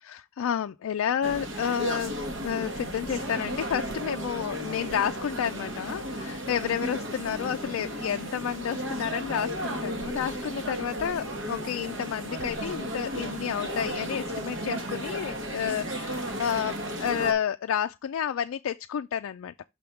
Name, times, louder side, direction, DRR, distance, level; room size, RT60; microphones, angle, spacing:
voice 1, 0.0-2.1 2.4-19.5, left 8 dB, 70° left, 0.3 m, -30 dB
sound 1, 1.2-17.3, equal, 60° right, 1.4 m, -34 dB
6.1 x 3.5 x 5.8 m
head